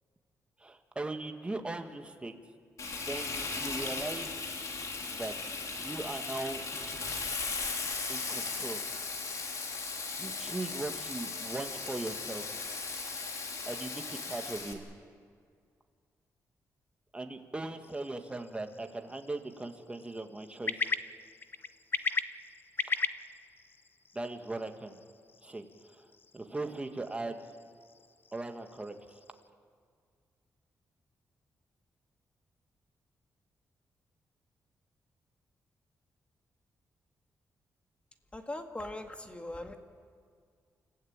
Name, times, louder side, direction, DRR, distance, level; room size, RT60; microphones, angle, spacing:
voice 1, 0.6-2.4 3.1-4.3 5.1-6.6 8.1-8.8 10.2-12.4 13.6-14.8 17.1-20.9 24.1-25.0 25.4-25.6 25.9-26.1 26.3-27.4 28.3-29.2, right 2 dB, 15° right, 5 dB, 1.8 m, -39 dB
Frying (food), 2.8-14.7, left 4 dB, 60° left, 3.2 m, -37 dB
sound 1, 17.8-29.5, left 4 dB, 35° left, 0.8 m, -40 dB
voice 2, 38.3-39.7, left 1 dB, 20° left, 5 dB, 1.9 m, -40 dB
29.0 x 15.0 x 8.8 m, 2.1 s
cardioid pair, 110°, 6 cm